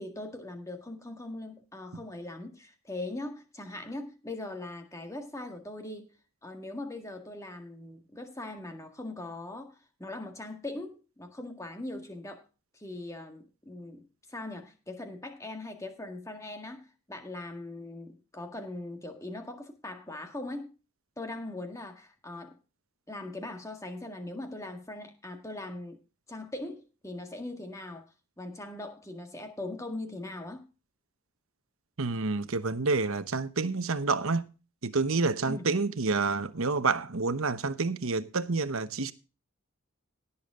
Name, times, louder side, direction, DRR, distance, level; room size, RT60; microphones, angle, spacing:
voice 1, 0.0-6.1 6.4-12.4 12.7-20.7 21.2-22.6 23.1-26.0 26.3-28.0 28.4-30.7 35.5-35.6, left 2 dB, 15° left, 1.8 m, -40 dB
voice 2, 32.0-34.5 34.8-39.1, right 3 dB, 70° right, 1.0 m, -28 dB
17.5 x 7.2 x 3.7 m
head